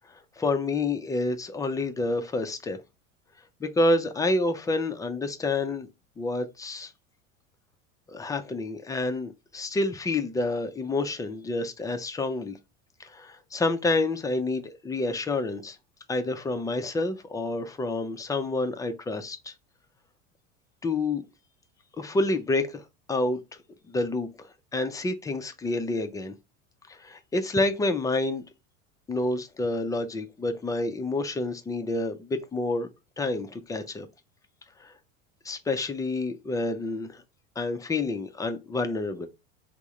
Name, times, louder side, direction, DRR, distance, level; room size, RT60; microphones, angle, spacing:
voice 1, 0.1-2.8 3.6-5.9 6.2-6.9 8.1-12.6 13.0-15.8 16.1-19.5 20.8-21.3 21.9-22.8 23.1-23.4 23.9-26.3 26.9-28.4 29.1-32.9 33.2-34.1 34.8-34.9 35.4-37.2 37.6-39.3, left 2 dB, 10° left, 0.3 m, -28 dB
3.4 x 2.0 x 4.2 m
hypercardioid pair, 80°, 39 cm